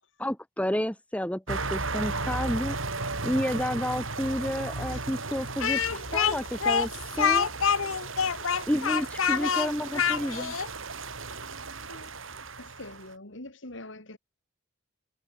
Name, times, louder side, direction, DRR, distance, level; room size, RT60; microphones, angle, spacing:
voice 1, 0.2-2.8 3.2-7.5 8.7-10.5, equal, 5° left, 1.6 m, -30 dB
sound 1, 1.5-13.1, right 3 dB, 75° right, 6.3 m, -35 dB
Speech, 5.6-10.7, left 7 dB, 85° left, 1.1 m, -26 dB
voice 2, 12.6-14.2, left 2 dB, 65° left, 3.4 m, -44 dB
head